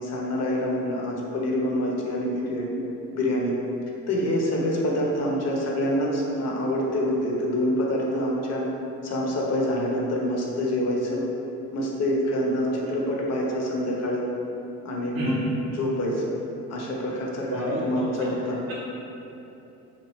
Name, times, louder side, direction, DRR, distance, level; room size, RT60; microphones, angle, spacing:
voice 1, 0.0-2.8 3.1-3.5 4.1-8.7 9.0-11.2 11.7-14.2 14.8-16.2 16.7-18.6, left 1 dB, 35° left, -2 dB, 0.6 m, -26 dB
voice 2, 17.5-18.3 18.7-18.8, right 1 dB, 50° right, -6 dB, 0.7 m, -31 dB
2.9 x 2.3 x 3.2 m, 2.9 s
figure-of-eight pair, 50°, 47 cm